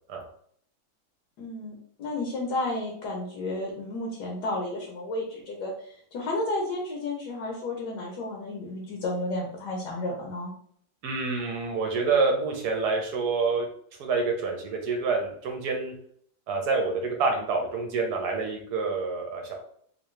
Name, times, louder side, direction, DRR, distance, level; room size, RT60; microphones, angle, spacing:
voice 1, 1.4-10.5, left 2 dB, 65° left, -1 dB, 1.4 m, -32 dB
voice 2, 11.0-13.7 14.0-15.9 16.5-19.5, right 4 dB, 65° right, 2 dB, 1.1 m, -27 dB
3.5 x 2.7 x 3.1 m, 0.63 s
omnidirectional pair, 2.0 m